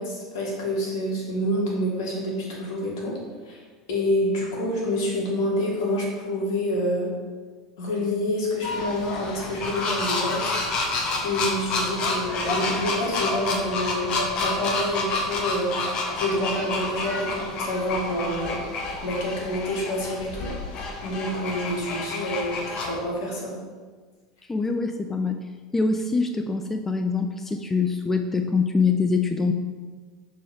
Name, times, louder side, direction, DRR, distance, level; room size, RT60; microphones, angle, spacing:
voice 1, 0.0-3.2 3.5-3.6 3.9-7.1 7.8-10.7 10.9-18.6 19.0-23.5, left 1 dB, 70° left, -3 dB, 2.1 m, -28 dB
sound 1, 8.6-23.0, left 3 dB, 45° left, 1.2 m, -29 dB
voice 2, 24.5-25.4 25.7-29.5, left 4 dB, 15° left, 6 dB, 0.5 m, -24 dB
6.4 x 4.2 x 5.2 m, 1.5 s
hypercardioid pair, 85°, 2 cm